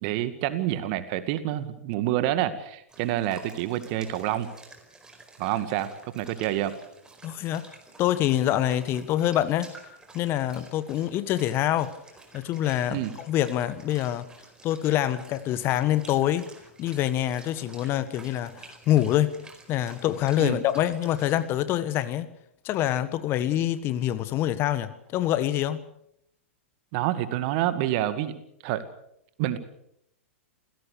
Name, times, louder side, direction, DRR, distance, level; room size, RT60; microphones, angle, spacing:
voice 1, 0.0-4.5 5.4-6.7 12.9-13.1 20.4-20.6 26.9-28.4 28.6-28.8 29.4-29.6, right 13 dB, 45° right, 2.1 m, -28 dB
sound 1, 2.9-21.5, right 3 dB, 10° right, 4.5 m, -50 dB
voice 2, 7.2-7.7 8.0-9.7 10.1-11.9 12.3-14.3 14.6-16.5 16.8-19.4 19.7-22.3 22.6-25.8, left 12 dB, 35° left, 1.5 m, -25 dB
28.0 x 17.0 x 6.8 m
figure-of-eight pair, 105°, 7 cm